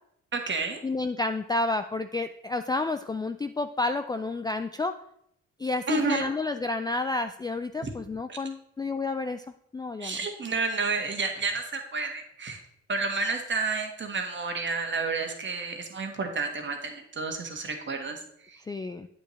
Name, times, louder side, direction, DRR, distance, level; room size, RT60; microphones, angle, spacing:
voice 1, 0.3-0.8 5.9-6.3 8.3-8.4 10.0-12.6 12.9-18.2 18.5-18.6, right 4 dB, 40° right, 4 dB, 1.5 m, -30 dB
voice 2, 0.8-4.9 5.6-9.4 9.7-10.2 18.6-19.1, left 3 dB, 15° left, 8 dB, 0.3 m, -30 dB
8.6 x 8.4 x 3.2 m, 0.73 s
cardioid pair, 90°, 30 cm